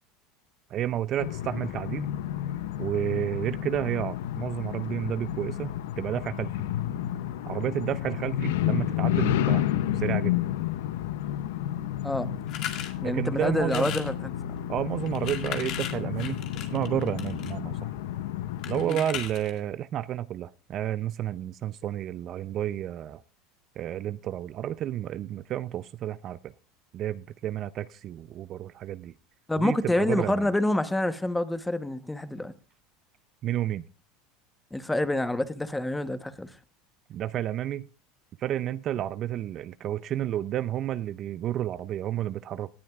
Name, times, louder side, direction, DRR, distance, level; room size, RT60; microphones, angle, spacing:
voice 1, 0.7-2.1 2.8-6.6 7.5-9.6 9.9-10.4 13.0-13.9 14.7-17.9 18.7-23.2 23.8-26.5 26.9-29.1 29.6-30.5 33.4-33.8 37.1-37.9 38.4-42.7, right 11 dB, 45° right, 0.4 m, -31 dB
sound 1, 1.2-18.9, left 12 dB, 85° left, 0.6 m, -31 dB
sound 2, 12.5-12.9 13.6-14.1 15.0-17.5 18.6-19.6, left 10 dB, 55° left, 2.0 m, -36 dB
voice 2, 13.0-14.1 18.8-19.0 29.5-32.5 34.7-36.5, left 1 dB, 5° left, 1.0 m, -27 dB
18.5 x 10.5 x 2.4 m
supercardioid pair, 120°, 0 cm